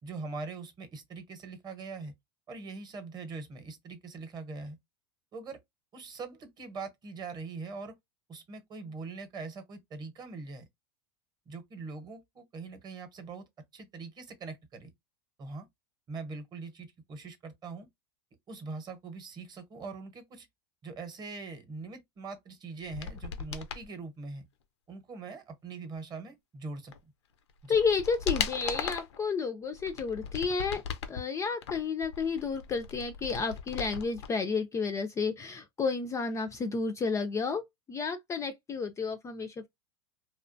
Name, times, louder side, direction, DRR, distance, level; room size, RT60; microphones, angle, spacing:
voice 1, 0.0-2.1 2.5-4.8 5.3-5.6 5.9-7.9 8.3-10.6 11.5-13.5 13.7-14.9 15.4-15.7 16.1-17.9 18.5-20.5 20.8-24.4 24.9-26.9 27.6-27.8, right 4 dB, 30° right, 0.8 m, -42 dB
sound 1, 22.8-23.9 26.9-27.0 27.5-29.2 29.7-31.2 31.6-34.3 34.6-34.7, left 7 dB, 85° left, 0.5 m, -37 dB
voice 2, 27.7-30.8 31.1-37.6 37.9-39.7, left 5 dB, 20° left, 0.3 m, -31 dB
2.4 x 2.1 x 2.5 m
hypercardioid pair, 110°, 14 cm